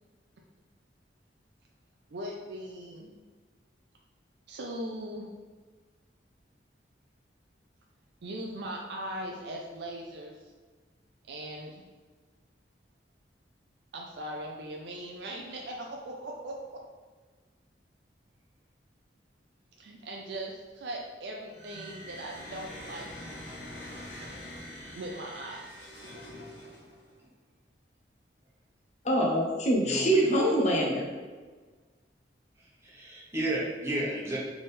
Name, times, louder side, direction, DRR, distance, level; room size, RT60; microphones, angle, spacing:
voice 1, 2.1-3.1 4.5-5.3 8.2-10.4 11.3-11.8 13.9-16.8 19.8-23.1 24.9-26.0, right 1 dB, 70° right, 0 dB, 0.5 m, -39 dB
sound 1, 21.5-27.1, left 1 dB, 85° left, 1.3 m, -44 dB
voice 2, 29.0-31.1, right 1 dB, 40° left, -2 dB, 0.6 m, -25 dB
voice 3, 29.8-30.2 32.8-34.4, right 1 dB, 15° right, -6 dB, 1.1 m, -32 dB
3.6 x 3.4 x 4.1 m, 1.4 s
head